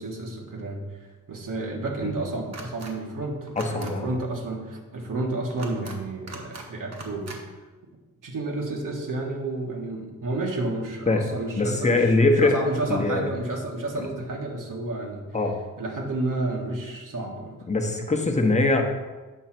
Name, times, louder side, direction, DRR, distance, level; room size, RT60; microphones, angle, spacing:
voice 1, 0.0-7.4 8.2-15.3 15.8-17.6 17.9-18.0, right 2 dB, 70° right, 0 dB, 1.4 m, -31 dB
sound 1, 2.5-2.9 3.5-3.9 5.5-6.0 6.3-6.7 6.9-7.4, right 3 dB, 55° right, 1.2 m, -40 dB
voice 2, 3.6-4.1 11.1-11.2 11.6-12.5 12.9-13.3 15.3-15.5 17.7-18.8, left 2 dB, 20° left, 3 dB, 0.9 m, -22 dB
8.0 x 3.9 x 5.9 m, 1.2 s
wide cardioid pair, 135°, 33 cm